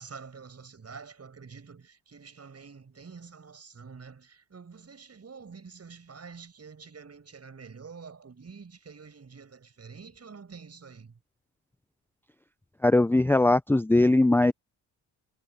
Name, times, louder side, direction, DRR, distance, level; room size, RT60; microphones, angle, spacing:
voice 1, 0.0-11.2, right 5 dB, 40° right, 7.6 m, -47 dB
voice 2, 12.8-14.5, left 2 dB, 5° left, 0.6 m, -20 dB
supercardioid pair, 60°, 37 cm